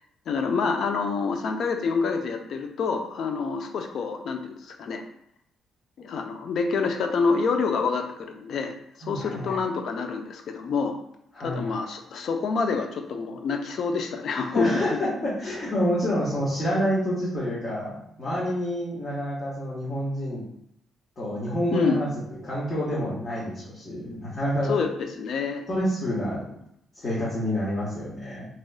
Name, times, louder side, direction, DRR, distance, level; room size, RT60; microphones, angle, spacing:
voice 1, 0.3-5.0 6.0-11.0 11.4-15.0 21.7-22.1 24.7-24.9 25.2-25.7, left 5 dB, 65° left, 5 dB, 0.4 m, -27 dB
voice 2, 9.0-9.6 11.3-11.8 14.5-20.4 21.2-22.1 22.4-24.7 25.7-26.5 27.0-28.5, equal, 45° left, -9 dB, 1.1 m, -28 dB
3.0 x 2.9 x 2.2 m, 0.74 s
cardioid pair, 90°, 0 cm